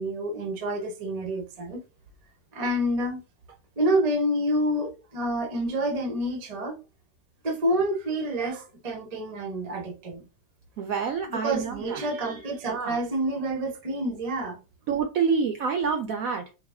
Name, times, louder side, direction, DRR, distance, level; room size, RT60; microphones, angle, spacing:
voice 1, 0.0-1.8 2.5-3.2 3.8-6.8 7.4-10.2 11.3-14.6, right 1 dB, 45° right, 0.4 m, -28 dB
voice 2, 10.8-12.0 12.7-13.0 14.9-16.6, right 6 dB, 75° right, 0.8 m, -27 dB
4.6 x 2.1 x 3.4 m
omnidirectional pair, 1.9 m